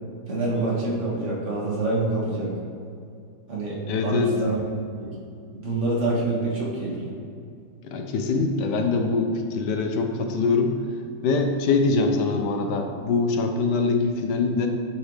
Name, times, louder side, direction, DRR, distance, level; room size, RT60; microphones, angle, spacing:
voice 1, 0.3-2.5 3.5-3.8 4.0-4.6 5.0-5.1 5.5-7.1, right 2 dB, 45° right, -5 dB, 1.8 m, -26 dB
voice 2, 3.9-4.3 7.8-10.7 11.2-14.7, left 4 dB, 85° left, 4 dB, 1.3 m, -23 dB
9.5 x 4.8 x 3.2 m, 2.4 s
omnidirectional pair, 1.8 m